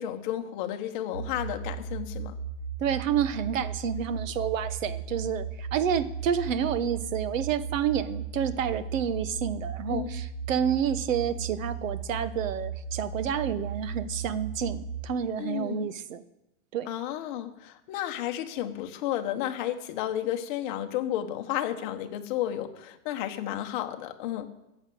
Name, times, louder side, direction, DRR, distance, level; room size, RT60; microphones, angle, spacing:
voice 1, 0.0-2.4 9.9-10.1 15.4-15.9 16.9-24.5, left 12 dB, 40° left, 6 dB, 1.2 m, -32 dB
sound 1, 1.1-15.1, right 5 dB, 60° right, 4.8 m, -36 dB
voice 2, 2.8-16.2 16.7-16.9, right 8 dB, 85° right, 13 dB, 1.2 m, -29 dB
14.0 x 8.1 x 7.8 m, 0.94 s
supercardioid pair, 170°, 38 cm